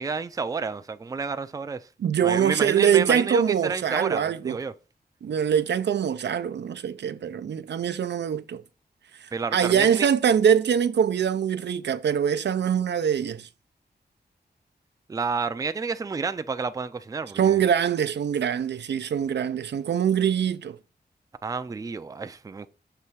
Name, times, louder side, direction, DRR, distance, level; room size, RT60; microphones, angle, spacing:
voice 1, 0.0-1.9 2.2-4.7 9.3-10.1 15.1-17.6 21.4-22.7, right 4 dB, 20° right, 0.4 m, -30 dB
voice 2, 2.0-4.6 5.2-8.6 9.2-13.5 17.3-20.8, right 8 dB, 90° right, 0.5 m, -23 dB
6.8 x 3.2 x 6.1 m
wide cardioid pair, 170°, 17 cm